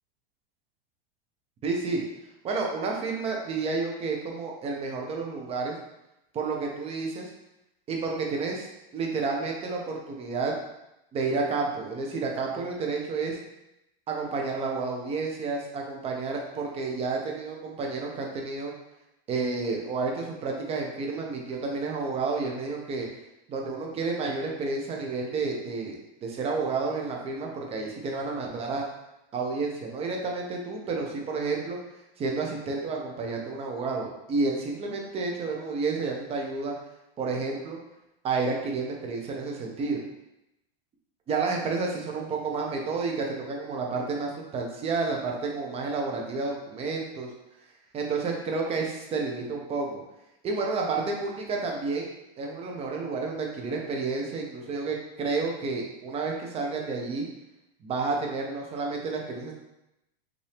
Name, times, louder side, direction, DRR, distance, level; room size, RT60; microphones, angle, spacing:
voice 1, 1.6-2.0 2.4-5.8 6.3-7.3 7.9-10.6 11.1-13.4 14.1-18.7 19.3-23.1 23.5-28.8 29.3-31.8 32.2-36.7 37.2-37.8 38.2-40.0 41.3-47.3 47.9-50.0 50.4-52.1 52.4-57.2 57.8-59.5, right 4 dB, 20° right, 0 dB, 0.7 m, -30 dB
5.5 x 2.6 x 3.4 m, 0.89 s
supercardioid pair, 145°, 29 cm